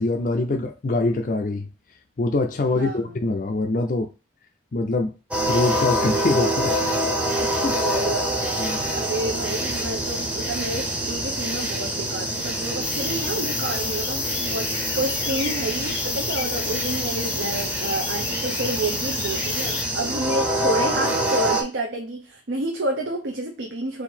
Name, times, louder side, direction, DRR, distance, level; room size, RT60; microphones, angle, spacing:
voice 1, 0.0-1.7 2.2-4.1 4.7-5.1 5.5-6.7 7.4-7.8 8.6-8.8, left 2 dB, 45° left, 0.4 m, -24 dB
voice 2, 2.7-3.2 7.7-8.6 8.9-24.0, right 2 dB, 70° right, 0.7 m, -29 dB
sound 1, 5.3-21.6, right 1 dB, 5° right, 0.7 m, -26 dB
sound 2, 12.8-19.8, left 9 dB, 90° left, 0.7 m, -32 dB
3.8 x 2.6 x 4.2 m
head